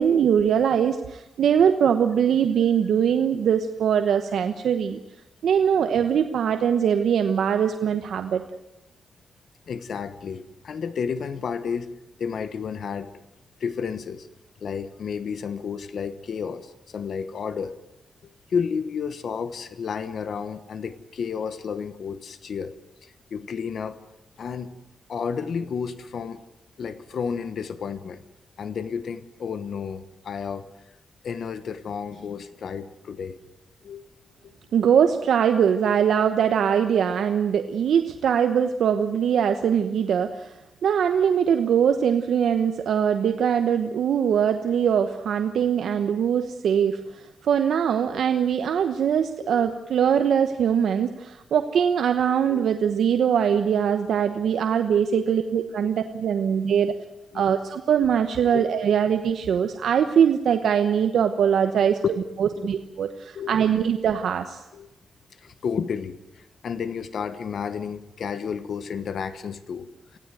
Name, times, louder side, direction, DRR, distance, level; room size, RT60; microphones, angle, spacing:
voice 1, 0.0-5.0 5.4-8.4 34.7-40.5 40.8-57.0 57.3-62.0 62.4-64.6, right 8 dB, 85° right, 7 dB, 1.1 m, -22 dB
voice 2, 9.7-11.9 12.2-13.1 13.6-14.3 14.6-17.8 18.5-22.7 23.0-24.0 24.4-24.7 25.1-26.4 26.8-28.2 28.6-30.7 31.2-33.4 33.8-34.0 34.4-34.5 49.4-49.7 52.5-52.6 55.1-55.2 56.9-57.0 57.3-57.5 58.5-58.7 62.4-62.7 63.3-63.6 64.7-64.9 65.4-70.2, left 6 dB, 65° left, 13 dB, 1.2 m, -32 dB
25.0 x 16.5 x 9.2 m, 0.97 s
wide cardioid pair, 145°, 0 cm